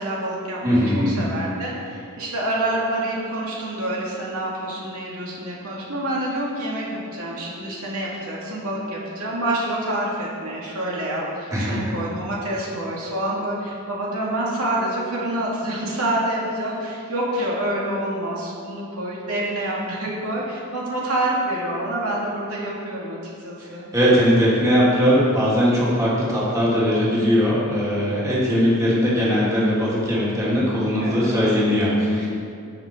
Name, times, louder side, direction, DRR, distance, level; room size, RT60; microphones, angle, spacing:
voice 1, 0.0-23.9 31.0-31.3, right 1 dB, 80° right, -5 dB, 2.5 m, -27 dB
voice 2, 0.6-1.2 11.5-11.9 23.6-32.3, equal, 15° right, -7 dB, 2.6 m, -20 dB
18.0 x 6.3 x 4.6 m, 2.4 s
head